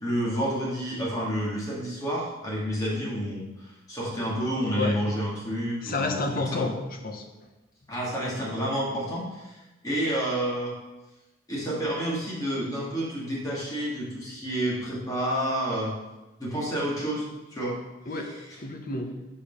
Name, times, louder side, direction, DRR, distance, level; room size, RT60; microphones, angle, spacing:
voice 1, 0.0-6.6 7.9-10.7 11.5-15.9 16.4-17.8 18.1-18.4, equal, 20° left, -6 dB, 2.3 m, -30 dB
voice 2, 5.8-7.2 18.1-19.2, left 3 dB, 45° left, 4 dB, 0.9 m, -30 dB
6.8 x 5.4 x 5.4 m, 1.0 s
head